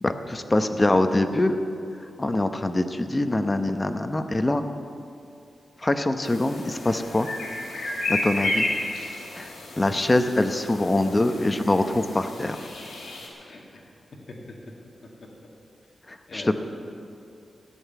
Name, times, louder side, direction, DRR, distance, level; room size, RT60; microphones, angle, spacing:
voice 1, 0.0-1.6 2.2-4.6 5.8-7.3 8.1-8.7 9.3-9.5 9.8-12.6 16.1-16.5, left 2 dB, 20° left, 8 dB, 0.8 m, -24 dB
sound 1, 6.2-13.3, left 2 dB, 70° left, 3.4 m, -32 dB
voice 2, 11.1-11.6 13.0-13.1 13.4-13.8 14.5-14.6 16.3-16.5, left 2 dB, 50° left, -2 dB, 2.3 m, -43 dB
15.0 x 7.9 x 9.3 m, 2.6 s
wide cardioid pair, 120°, 0 cm